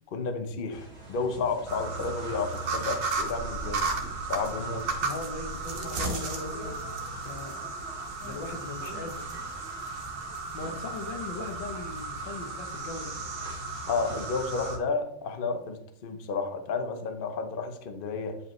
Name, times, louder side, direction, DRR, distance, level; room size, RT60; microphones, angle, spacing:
voice 1, 0.1-3.9 4.3-4.9 13.9-18.4, left 4 dB, 45° left, 7 dB, 0.7 m, -31 dB
sound 1, 0.7-14.7, right 1 dB, 40° right, 2.2 m, -45 dB
sound 2, 1.7-14.8, right 3 dB, 80° right, 2.0 m, -35 dB
voice 2, 5.0-6.8 7.2-7.7 8.2-9.3 10.5-13.2, left 3 dB, 90° left, 6 dB, 1.8 m, -39 dB
9.7 x 5.3 x 3.2 m, 0.72 s
omnidirectional pair, 1.9 m